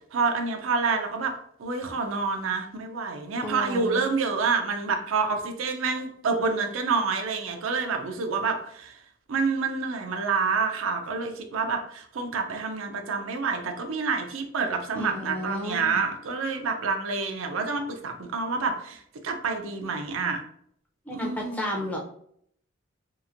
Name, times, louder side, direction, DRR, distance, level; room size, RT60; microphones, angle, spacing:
voice 1, 0.1-9.0 9.3-20.4 21.1-21.7, right 4 dB, 75° right, 5 dB, 0.4 m, -28 dB
voice 2, 3.4-4.0 14.9-16.0 21.1-22.0, left 1 dB, 5° left, -2 dB, 0.5 m, -33 dB
2.9 x 2.4 x 2.5 m, 0.67 s
head